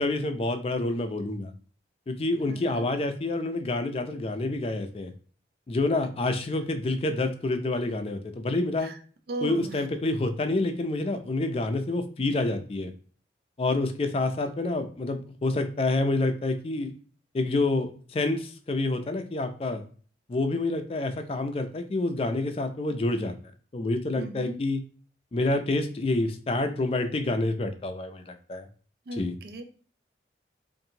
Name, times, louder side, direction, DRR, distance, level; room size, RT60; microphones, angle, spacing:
voice 1, 0.0-1.5 2.1-5.1 5.7-8.9 9.4-12.9 13.6-16.9 17.3-19.8 20.3-23.3 23.7-24.8 25.3-28.7 29.1-29.3, left 2 dB, 30° left, 7 dB, 0.3 m, -28 dB
voice 2, 2.5-2.8 8.8-9.0 9.3-9.8 24.2-24.6 29.1-29.6, right 2 dB, 55° right, 6 dB, 0.4 m, -36 dB
2.7 x 2.5 x 2.7 m, 0.42 s
head